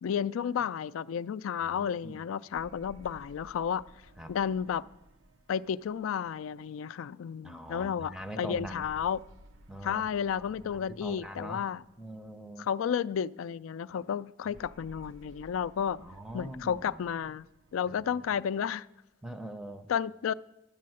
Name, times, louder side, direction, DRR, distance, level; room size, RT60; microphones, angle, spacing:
voice 1, 0.0-3.8 4.3-4.9 5.5-9.2 9.8-11.8 12.6-16.0 16.3-17.5 17.7-18.9 19.9-20.3, left 8 dB, 80° left, 0.3 m, -32 dB
voice 2, 1.6-2.2 4.2-4.3 7.4-8.9 9.7-11.6 12.0-12.7 16.0-16.9 19.2-19.9, right 1 dB, 5° right, 0.5 m, -43 dB
sound 1, 2.5-7.1 8.5-12.9 14.5-19.1, equal, 70° right, 0.7 m, -57 dB
11.5 x 8.3 x 7.6 m
head